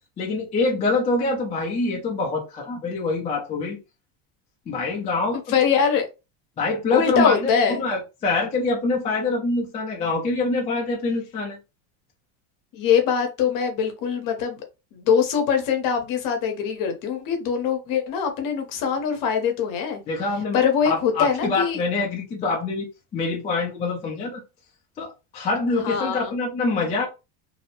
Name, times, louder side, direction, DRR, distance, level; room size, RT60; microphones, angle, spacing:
voice 1, 0.2-3.8 4.7-5.5 6.6-11.6 20.1-20.6 20.8-22.9 23.1-24.4 25.0-27.1, left 3 dB, 15° left, 0.4 m, -25 dB
voice 2, 5.5-6.0 6.9-7.8 12.7-14.6 14.9-20.0 20.5-21.8 25.8-26.3, left 7 dB, 45° left, 0.8 m, -23 dB
2.7 x 2.0 x 2.8 m
cardioid pair, 160°, 45 cm